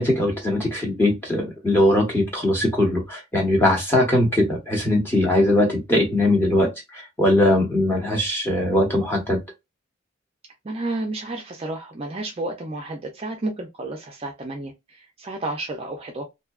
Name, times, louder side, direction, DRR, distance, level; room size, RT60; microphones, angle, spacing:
voice 1, 0.0-9.4, left 1 dB, 10° left, 0.9 m, -20 dB
voice 2, 10.6-16.3, right 2 dB, 30° right, 0.4 m, -31 dB
2.6 x 2.2 x 2.2 m
head